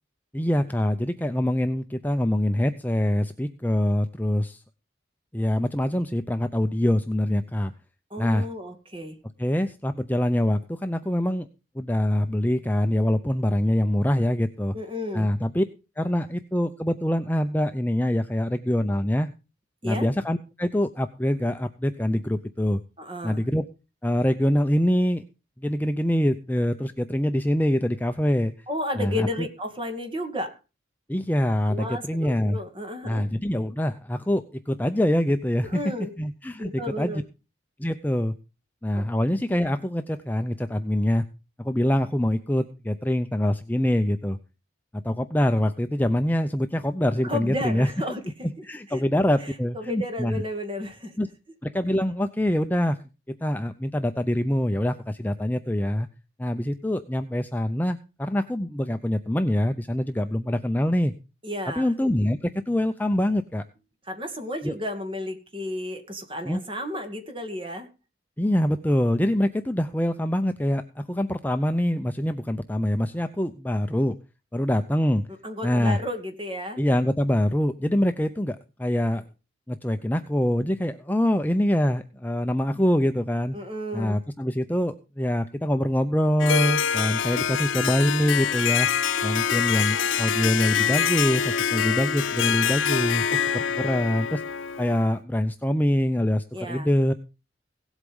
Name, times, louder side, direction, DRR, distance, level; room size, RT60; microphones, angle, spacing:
voice 1, 0.3-4.6 5.3-7.7 8.2-8.5 9.4-11.5 11.7-14.7 15.1-15.6 16.0-19.3 19.8-22.8 23.2-23.7 24.0-25.2 25.6-28.5 29.0-29.5 31.1-32.6 33.0-35.8 36.2-37.2 37.8-38.3 38.8-41.2 41.6-44.4 44.9-47.9 48.7-50.4 51.2-51.3 51.6-53.0 53.4-56.1 56.4-61.1 61.8-63.6 64.6-64.8 66.5-66.6 68.4-74.2 74.5-75.2 75.6-76.0 76.8-79.2 79.7-83.6 83.9-88.9 89.2-94.4 94.8-97.1, left 1 dB, 10° left, 7 dB, 0.6 m, -24 dB
voice 2, 8.1-9.2 14.7-15.3 19.8-20.1 23.0-23.4 28.7-30.5 31.7-33.2 35.6-36.1 36.6-37.2 38.9-39.0 47.2-48.2 48.6-49.0 49.4-51.1 61.4-61.9 64.1-67.9 75.4-76.8 83.5-84.2 96.5-96.9, left 1 dB, 25° right, 6 dB, 2.4 m, -33 dB
Harp, 86.4-95.2, left 8 dB, 80° left, 0.6 m, -25 dB
17.0 x 8.2 x 5.4 m, 0.31 s
head